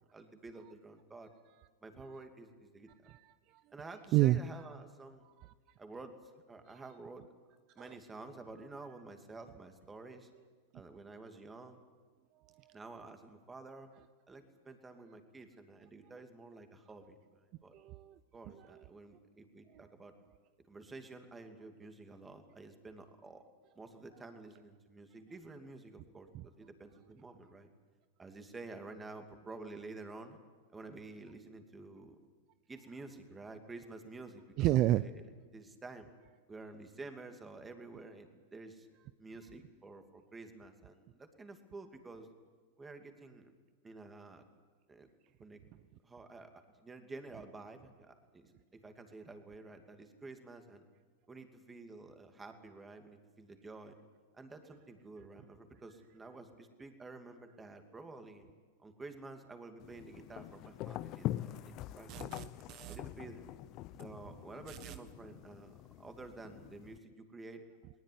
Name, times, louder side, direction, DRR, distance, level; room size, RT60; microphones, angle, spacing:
voice 1, 0.1-1.3 1.8-2.9 3.7-5.3 5.8-6.2 6.5-7.3 7.7-10.3 10.7-11.8 12.7-13.9 14.3-17.7 18.3-20.1 20.7-23.4 23.7-27.7 28.2-30.4 30.7-32.2 32.7-36.1 36.5-38.9 39.2-42.3 42.8-43.5 43.8-44.4 44.9-45.1 45.4-45.6 46.0-50.8 51.3-54.0 54.3-58.5 58.8-62.4 62.9-63.4 64.0-67.6, right 3 dB, 15° right, 6 dB, 2.7 m, -50 dB
voice 2, 3.0-3.6 4.1-4.4 5.4-5.5 6.7-6.8 7.8-7.9 12.6-12.7 17.7-18.1 18.5-18.8 34.6-35.0 62.1-63.0 64.7-64.9, right 15 dB, 45° right, 14 dB, 0.6 m, -31 dB
sound 1, 59.8-67.0, left 15 dB, 45° left, 0.7 m, -44 dB
19.5 x 19.0 x 9.6 m, 1.5 s
hypercardioid pair, 115°, 0 cm